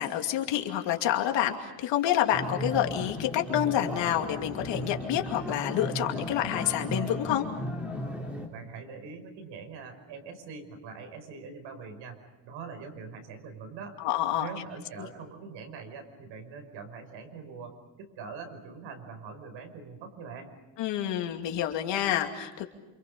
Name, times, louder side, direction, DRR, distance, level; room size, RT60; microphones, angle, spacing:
voice 1, 0.0-7.5 14.0-14.5 15.0-15.1 20.8-22.7, left 11 dB, 70° left, 3 dB, 2.7 m, -28 dB
sound 1, 2.3-8.5, left 1 dB, 5° right, 3.4 m, -35 dB
voice 2, 8.5-14.0 14.4-20.5, right 5 dB, 75° right, 5 dB, 5.6 m, -43 dB
28.5 x 27.5 x 5.5 m, 1.1 s
cardioid pair, 170°, 45 cm